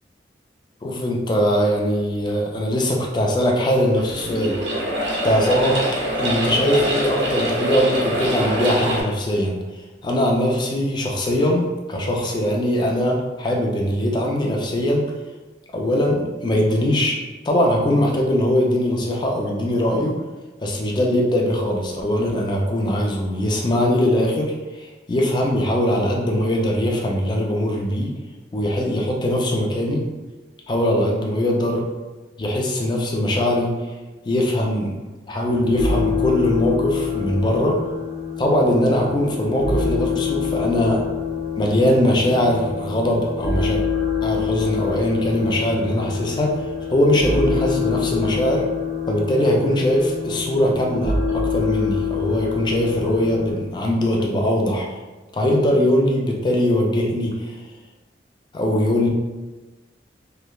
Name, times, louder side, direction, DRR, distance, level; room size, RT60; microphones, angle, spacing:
voice 1, 0.8-4.6 5.2-5.8 6.2-9.6 10.0-15.1 15.7-17.2 17.4-20.2 20.6-28.1 28.5-30.1 30.7-31.9 32.4-33.8 34.2-35.0 35.3-37.8 38.4-41.0 41.6-43.8 44.2-46.5 46.9-48.6 49.1-55.0 55.3-57.6 58.5-59.1, left 1 dB, 25° left, -1 dB, 0.3 m, -21 dB
sound 1, 3.9-9.0, equal, 85° right, 0.7 m, -24 dB
sound 2, 35.5-53.5, left 6 dB, 65° left, 1.0 m, -26 dB
3.0 x 2.1 x 2.2 m, 1.2 s
head